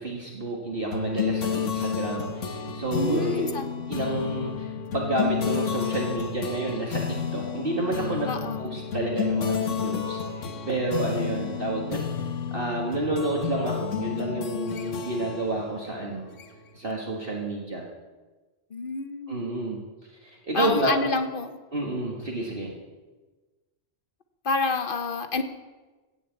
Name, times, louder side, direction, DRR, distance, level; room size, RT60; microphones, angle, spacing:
voice 1, 0.0-3.4 3.9-12.1 12.5-16.2 16.7-17.9 19.3-19.8 20.2-21.0 21.7-22.7, right 2 dB, 45° right, -2 dB, 2.0 m, -29 dB
sound 1, 0.9-16.8, left 7 dB, 75° left, 1.4 m, -31 dB
voice 2, 2.9-3.7 8.3-8.7 18.7-19.3 20.5-21.6 24.4-25.4, left 3 dB, 50° left, 9 dB, 1.1 m, -28 dB
16.0 x 6.9 x 8.4 m, 1.2 s
omnidirectional pair, 1.3 m